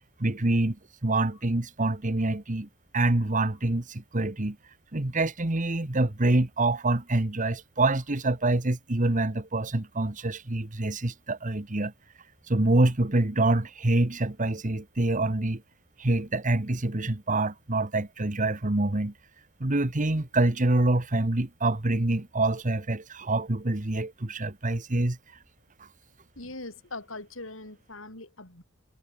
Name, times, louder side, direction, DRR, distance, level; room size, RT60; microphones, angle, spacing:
voice 1, 0.2-0.8 1.0-2.7 2.9-4.6 4.9-11.9 12.5-15.6 16.0-19.1 19.6-25.2, right 2 dB, 40° right, 1.5 m, -26 dB
voice 2, 26.4-28.6, left 2 dB, 75° left, 7.3 m, -41 dB
head